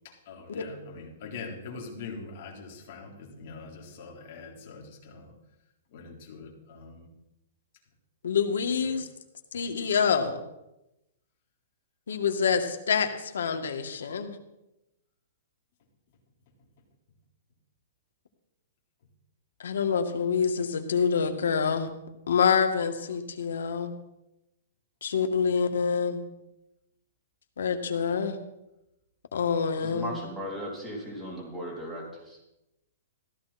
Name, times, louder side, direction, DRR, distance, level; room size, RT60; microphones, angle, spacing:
voice 1, 0.0-5.4 5.9-7.1 8.8-8.9, left 4 dB, 40° left, -1 dB, 3.8 m, -43 dB
voice 2, 8.2-9.1 9.5-10.4 12.1-14.4 19.6-21.9 22.3-23.9 25.0-26.2 27.6-28.4 29.3-30.2, left 6 dB, 90° left, 6 dB, 2.0 m, -26 dB
voice 3, 29.8-32.4, equal, ahead, -5 dB, 3.5 m, -37 dB
15.5 x 13.0 x 4.3 m, 0.92 s
hypercardioid pair, 170°, 0 cm